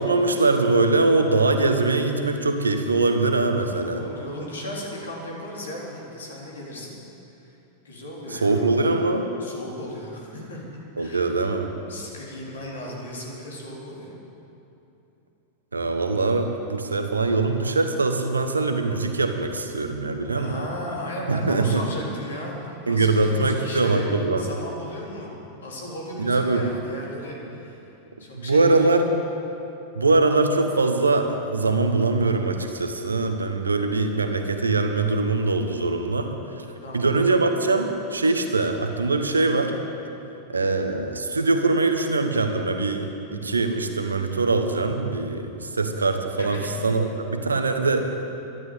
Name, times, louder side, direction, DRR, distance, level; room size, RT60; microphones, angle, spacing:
voice 1, 0.0-4.0 8.3-9.3 11.0-11.7 15.7-20.7 21.3-21.8 22.9-24.5 26.2-26.7 28.3-29.1 29.9-36.3 36.6-36.7 36.9-39.7 40.5-48.1, right 3 dB, 75° right, 6 dB, 1.1 m, -22 dB
voice 2, 3.7-7.0 7.8-9.1 9.4-10.6 11.0-11.3 11.9-14.2 20.1-24.1 24.4-25.3 25.6-27.8 28.2-28.9 36.8-37.2 46.4-46.7, left 1 dB, 65° left, -3 dB, 3.6 m, -35 dB
12.5 x 11.0 x 8.3 m, 2.9 s
figure-of-eight pair, 90°, 0 cm